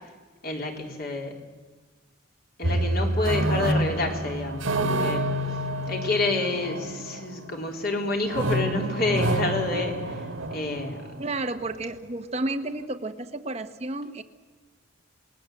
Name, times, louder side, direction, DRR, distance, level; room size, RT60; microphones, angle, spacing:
voice 1, 0.4-1.4 2.6-5.2 5.9-10.2 10.5-11.1, left 2 dB, 45° left, 2 dB, 3.7 m, -28 dB
sound 1, 2.6-7.8 8.2-11.4, right 1 dB, 75° right, 1.7 m, -28 dB
voice 2, 11.2-14.2, right 2 dB, 30° right, 8 dB, 1.0 m, -31 dB
27.5 x 20.0 x 7.9 m, 1.3 s
head